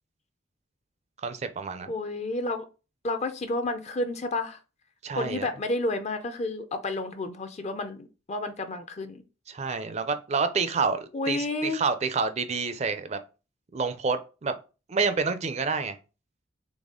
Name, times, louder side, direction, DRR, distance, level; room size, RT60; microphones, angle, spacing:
voice 1, 1.2-1.9 5.0-5.5 9.5-13.2 13.7-14.5 14.9-16.0, right 4 dB, 35° right, 0.4 m, -28 dB
voice 2, 1.9-2.6 3.0-4.6 5.1-9.2 11.1-11.8, left 2 dB, 35° left, 0.5 m, -31 dB
4.1 x 3.2 x 3.6 m
head